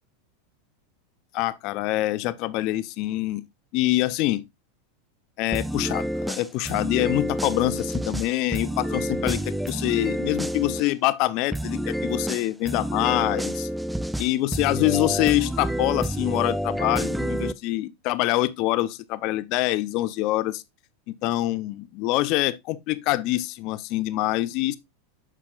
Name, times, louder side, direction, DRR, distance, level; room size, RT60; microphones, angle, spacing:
voice 1, 1.3-3.4 3.7-4.4 5.4-13.7 14.2-20.6 21.2-24.8, left 17 dB, 50° left, 0.6 m, -25 dB
sound 1, 5.5-10.9 11.5-17.5, equal, 5° right, 0.4 m, -29 dB
8.1 x 5.8 x 2.4 m
hypercardioid pair, 115°, 0 cm